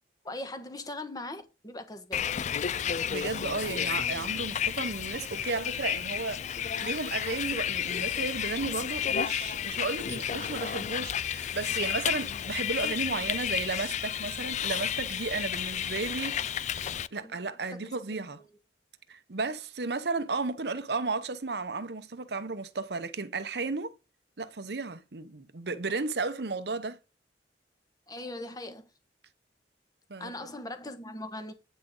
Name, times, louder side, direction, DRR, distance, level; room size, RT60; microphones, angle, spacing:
voice 1, 0.2-2.3 17.2-17.4 17.8-18.0 28.1-28.9 30.2-31.5, left 2 dB, 20° left, 1.3 m, -40 dB
Bus, 2.1-17.1, left 9 dB, 40° left, 0.3 m, -32 dB
voice 2, 3.1-18.4 19.1-23.9 24.4-27.0 30.1-30.3, right 3 dB, 65° right, 0.9 m, -34 dB
9.2 x 6.1 x 3.8 m
head